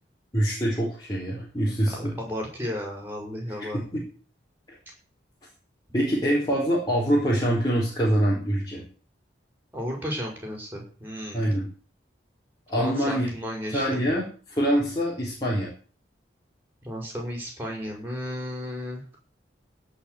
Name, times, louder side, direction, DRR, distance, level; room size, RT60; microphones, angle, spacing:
voice 1, 0.3-2.1 3.7-4.0 4.7-4.8 5.9-8.8 11.3-11.7 12.7-13.3 13.7-15.7, equal, 20° left, -6 dB, 4.6 m, -25 dB
voice 2, 1.9-4.0 9.7-11.5 12.8-14.0 16.8-19.0, equal, 10° right, 1 dB, 5.6 m, -34 dB
17.0 x 5.9 x 8.5 m, 0.41 s
head